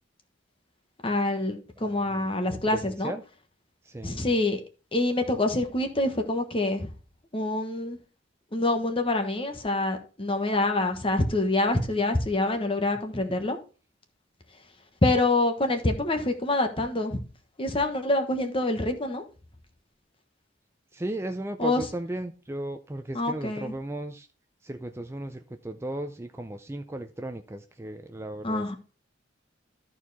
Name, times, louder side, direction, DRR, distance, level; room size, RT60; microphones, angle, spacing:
voice 1, 1.0-3.1 4.0-4.6 4.9-6.9 7.3-8.0 8.5-13.6 15.0-17.2 17.6-19.2 21.6-21.8 23.1-23.7 28.4-28.7, left 2 dB, 30° left, 1.3 m, -26 dB
voice 2, 1.8-3.2 3.8-4.1 13.1-13.2 20.9-24.3 24.6-28.7, right 1 dB, 15° right, 0.4 m, -36 dB
13.5 x 4.6 x 4.1 m
head